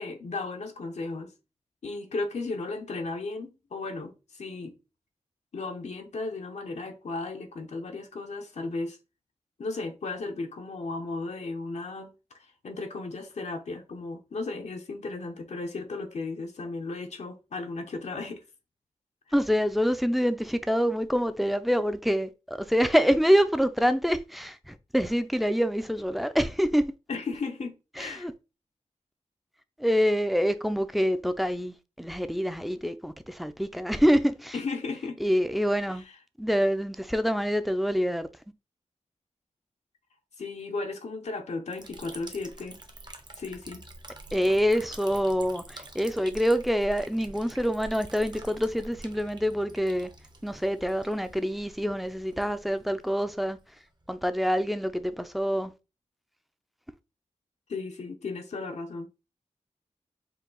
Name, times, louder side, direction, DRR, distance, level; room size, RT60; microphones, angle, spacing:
voice 1, 0.0-1.3 1.8-4.8 5.5-9.0 9.6-18.4 27.1-28.3 34.5-35.2 35.9-36.0 40.4-42.8 43.4-43.9 57.7-59.1, left 3 dB, 70° left, 0.7 m, -35 dB
voice 2, 19.3-26.9 28.0-28.3 29.8-34.5 35.2-36.0 36.4-38.3 44.3-50.1 50.4-53.6 54.1-55.7, equal, ahead, 0.5 m, -26 dB
Liquid, 41.7-54.2, right 2 dB, 35° right, 0.9 m, -47 dB
4.7 x 2.4 x 3.8 m
cardioid pair, 50°, 12 cm